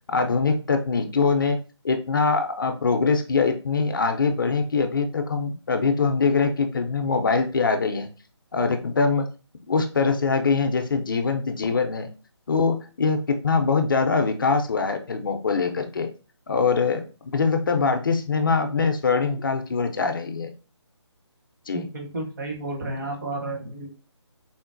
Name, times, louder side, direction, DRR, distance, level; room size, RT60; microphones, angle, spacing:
voice 1, 0.1-1.6 1.8-8.1 8.5-9.3 9.7-12.1 12.5-16.1 16.5-20.5 21.7-21.9, left 4 dB, 45° left, 5 dB, 0.4 m, -23 dB
voice 2, 21.7-23.9, right 2 dB, 45° right, 1 dB, 0.9 m, -32 dB
3.7 x 2.0 x 2.5 m, 0.34 s
figure-of-eight pair, 160°, 15 cm